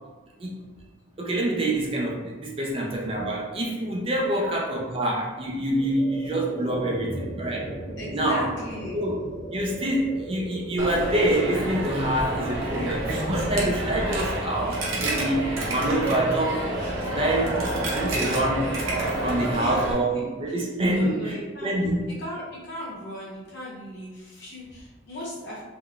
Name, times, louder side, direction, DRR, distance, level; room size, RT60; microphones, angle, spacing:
voice 1, 1.2-7.7 8.1-8.4 8.9-9.2 9.5-16.7 17.1-18.8 19.2-21.4 21.6-22.1, right 1 dB, 25° right, -2 dB, 0.4 m, -26 dB
sound 1, 5.4-16.5, right 1 dB, ahead, 0.7 m, -39 dB
voice 2, 8.0-9.0 19.5-20.3 20.8-21.7 22.2-25.6, equal, 55° left, -5 dB, 0.9 m, -37 dB
Coin (dropping), 10.8-19.9, right 1 dB, 70° right, 0.6 m, -28 dB
3.5 x 2.2 x 2.4 m, 1.3 s
head